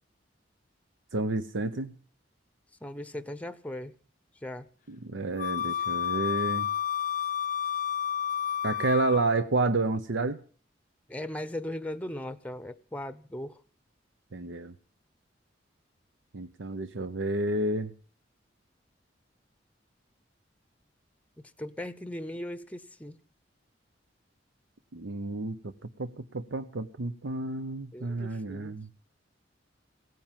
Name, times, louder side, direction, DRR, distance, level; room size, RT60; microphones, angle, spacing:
voice 1, 1.1-2.0 4.9-6.7 8.6-10.4 14.3-14.7 16.3-17.9 24.9-25.7 26.0-28.9, right 2 dB, 80° right, 0.8 m, -30 dB
voice 2, 2.8-3.9 4.4-4.7 11.1-13.6 21.4-23.2 27.9-28.8, left 1 dB, 10° left, 0.7 m, -38 dB
Wind instrument woodwind instrument, 5.4-9.4, left 9 dB, 45° left, 0.6 m, -30 dB
17.0 x 9.3 x 7.4 m
head